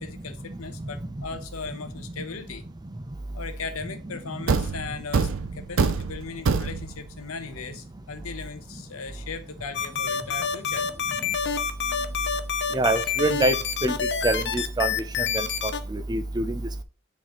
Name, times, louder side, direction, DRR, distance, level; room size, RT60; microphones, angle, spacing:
voice 1, 0.0-2.7 3.3-10.9, left 4 dB, 85° left, 0.9 m, -38 dB
Thump thud, 4.5-7.1, right 4 dB, 70° right, 0.6 m, -25 dB
sound 1, 9.7-15.8, left 6 dB, 55° left, 0.7 m, -27 dB
voice 2, 12.7-13.5 13.8-13.9 14.2-14.9 15.3-16.8, right 2 dB, 20° right, 0.5 m, -25 dB
8.6 x 4.0 x 3.0 m
head